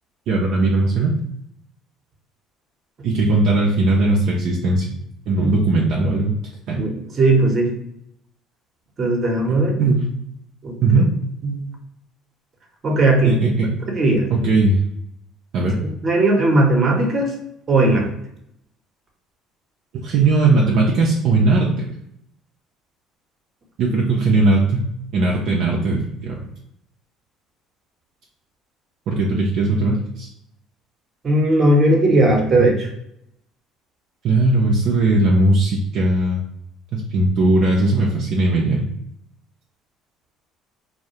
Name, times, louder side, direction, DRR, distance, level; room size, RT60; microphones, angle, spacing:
voice 1, 0.3-1.2 3.0-4.9 5.3-6.3 6.7-6.8 9.8-10.1 10.8-11.1 13.2-13.7 14.3-14.8 15.5-15.8 20.0-21.7 23.8-24.8 25.1-26.4 29.1-30.3 34.2-36.4 36.9-38.8, right 2 dB, 65° right, -2 dB, 0.4 m, -18 dB
voice 2, 7.2-7.7 9.0-9.7 10.6-11.0 11.4-11.6 12.8-13.4 13.9-14.3 15.8-17.4 17.7-18.1 31.2-32.9, right 2 dB, 40° right, 1 dB, 0.7 m, -17 dB
2.3 x 2.0 x 2.8 m, 0.77 s
hypercardioid pair, 65°, 0 cm